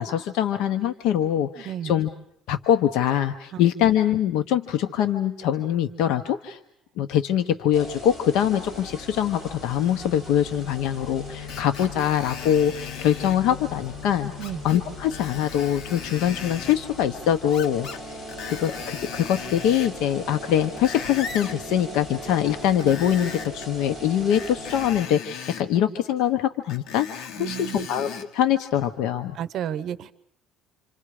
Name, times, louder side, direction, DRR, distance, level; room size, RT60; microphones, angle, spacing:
voice 1, 0.0-2.1 2.5-6.6 7.0-14.3 14.6-29.4, left 10 dB, 80° left, 8 dB, 1.1 m, -23 dB
voice 2, 1.6-1.9 3.5-3.6 14.4-14.6 27.4-27.9 29.3-30.1, right 10 dB, 55° right, 16 dB, 0.9 m, -32 dB
sound 1, 7.7-24.9, left 2 dB, 20° left, 7.7 m, -39 dB
Screech, 11.5-13.4 14.4-14.8 15.1-16.8 17.5-18.0 18.3-20.0 20.5-21.6 22.7-23.7 24.3-25.7 26.7-28.3 28.9-29.0, left 7 dB, 65° left, 2.2 m, -38 dB
28.0 x 27.5 x 5.0 m, 0.68 s
cardioid pair, 125°, 0 cm